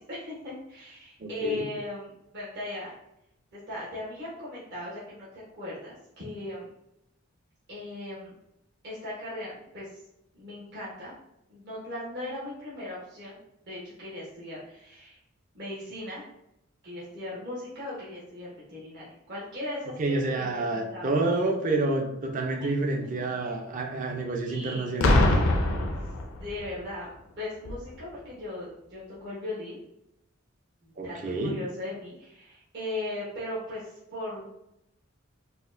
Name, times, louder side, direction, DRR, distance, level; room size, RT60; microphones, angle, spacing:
voice 1, 0.0-2.9 3.5-6.7 7.7-8.4 8.8-10.0 10.3-11.1 11.5-15.2 15.5-16.2 16.8-21.1 24.4-24.9 26.3-29.8 30.8-31.2 31.4-34.5, left 1 dB, 55° right, -8 dB, 1.0 m, -38 dB
voice 2, 1.2-1.6 20.0-25.3 31.0-31.6, right 2 dB, 40° right, 2 dB, 0.5 m, -28 dB
Boom, 25.0-26.8 27.6-27.9, left 2 dB, 85° left, 0.5 m, -23 dB
4.2 x 2.1 x 2.5 m, 0.83 s
head